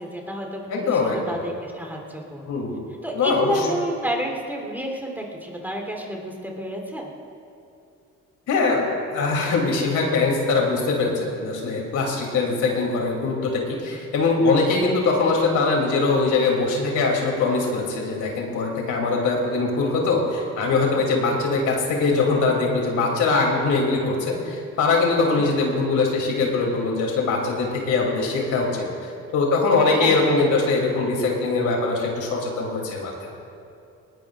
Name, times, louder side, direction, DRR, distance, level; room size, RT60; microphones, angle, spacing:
voice 1, 0.0-2.6 3.0-7.1 25.3-25.6 29.9-30.6, equal, 5° right, 0 dB, 3.5 m, -30 dB
voice 2, 0.7-1.4 2.5-2.8 3.1-3.6 8.5-8.9 9.1-33.3, left 3 dB, 80° left, -1 dB, 3.1 m, -22 dB
20.5 x 18.5 x 2.5 m, 2.7 s
cardioid pair, 90°, 30 cm